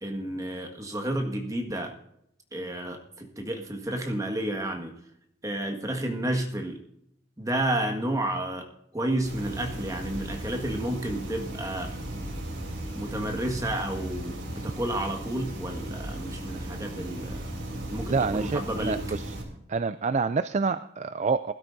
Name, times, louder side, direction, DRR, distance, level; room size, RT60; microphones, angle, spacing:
voice 1, 0.0-1.9 2.5-4.9 5.4-6.8 7.4-11.9 12.9-17.5 17.9-19.0, right 1 dB, 15° right, 3 dB, 1.7 m, -31 dB
sound 1, 9.2-19.4, right 1 dB, 70° right, 3.3 m, -36 dB
voice 2, 18.1-19.3 19.7-21.5, right 4 dB, 35° right, 12 dB, 0.4 m, -27 dB
20.0 x 12.5 x 2.7 m, 0.76 s
head